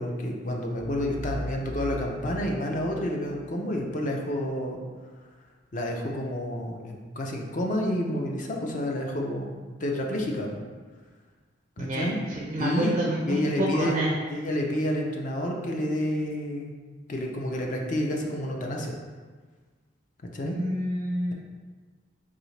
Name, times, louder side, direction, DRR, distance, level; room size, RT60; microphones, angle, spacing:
voice 1, 0.0-4.8 5.7-9.5 9.8-10.6 11.8-12.2 12.6-13.0 13.2-14.0 14.3-16.7 17.1-18.9 20.3-20.6, left 1 dB, 40° left, 1 dB, 0.4 m, -29 dB
sound 1, 0.7-3.6, equal, 90° left, 0.7 m, -38 dB
voice 2, 11.8-14.1 20.4-21.3, right 1 dB, 30° right, -3 dB, 0.4 m, -28 dB
3.8 x 2.8 x 3.2 m, 1.4 s
head